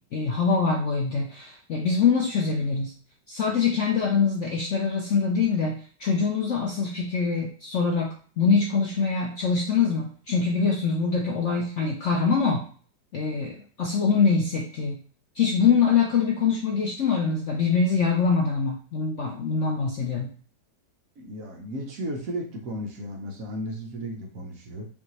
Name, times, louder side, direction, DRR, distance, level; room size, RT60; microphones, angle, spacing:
voice 1, 0.1-2.9 3.3-12.6 13.1-15.0 15.4-20.3, left 5 dB, 65° left, 0 dB, 0.7 m, -24 dB
voice 2, 21.2-24.9, equal, 60° right, 0 dB, 1.1 m, -34 dB
5.5 x 2.6 x 3.1 m, 0.43 s
omnidirectional pair, 1.9 m